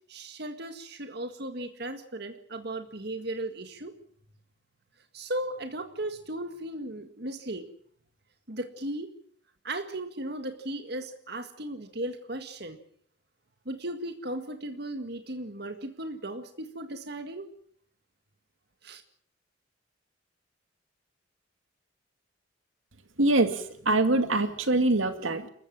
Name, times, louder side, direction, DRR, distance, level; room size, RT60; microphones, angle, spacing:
voice 1, 0.1-3.9 5.1-7.6 8.5-9.1 9.6-12.8 13.7-17.5 18.8-19.0, right 1 dB, 55° right, 7 dB, 1.9 m, -36 dB
voice 2, 23.2-25.5, right 2 dB, 85° right, 8 dB, 2.3 m, -24 dB
30.0 x 14.0 x 7.6 m, 0.62 s
head